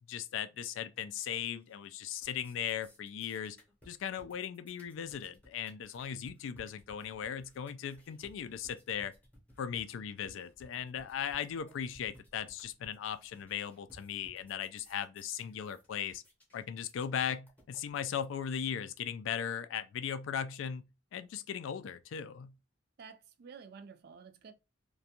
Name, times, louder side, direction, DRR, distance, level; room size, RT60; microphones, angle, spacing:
voice 1, 0.1-3.6 3.9-9.1 9.6-16.2 16.5-20.8 21.1-22.5, left 8 dB, 75° left, 0.3 m, -38 dB
sound 1, 1.5-1.9 2.1-18.1, equal, 10° left, 0.7 m, -60 dB
voice 2, 23.0-24.5, right 6 dB, 55° right, 0.3 m, -51 dB
2.5 x 2.2 x 2.8 m
head